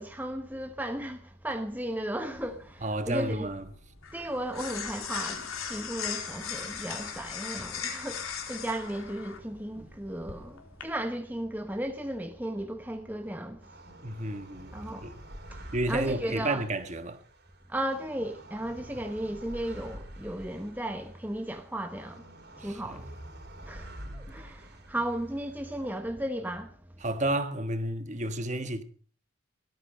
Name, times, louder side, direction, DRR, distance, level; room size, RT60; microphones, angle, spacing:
voice 1, 0.0-3.5 4.1-13.7 14.2-14.4 14.7-15.1 15.5-16.6 17.7-22.3 22.6-23.1 23.6-26.8, right 1 dB, 10° right, 1.0 m, -35 dB
sound 1, 2.4-10.8, left 7 dB, 90° left, 4.0 m, -39 dB
voice 2, 2.8-3.6 14.0-14.7 15.0-15.2 15.7-17.2 22.6-23.0 24.1-24.2 27.0-28.8, right 1 dB, 35° right, 1.5 m, -31 dB
sound 2, 13.6-26.0, right 1 dB, 50° right, 3.9 m, -47 dB
18.0 x 14.0 x 5.3 m
head